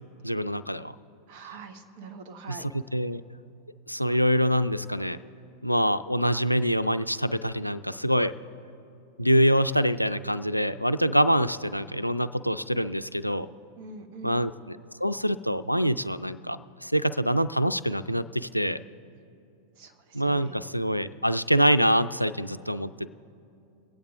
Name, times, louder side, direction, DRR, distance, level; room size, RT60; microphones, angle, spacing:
voice 1, 0.2-0.9 2.5-3.2 3.9-5.2 5.6-8.3 9.2-13.5 14.2-18.8 20.1-23.1, equal, 90° left, 12 dB, 0.3 m, -25 dB
voice 2, 1.3-2.7 13.7-14.5 19.8-20.8, right 3 dB, 45° right, 4 dB, 1.2 m, -44 dB
23.0 x 8.7 x 3.6 m, 2.6 s
figure-of-eight pair, 90°, 0 cm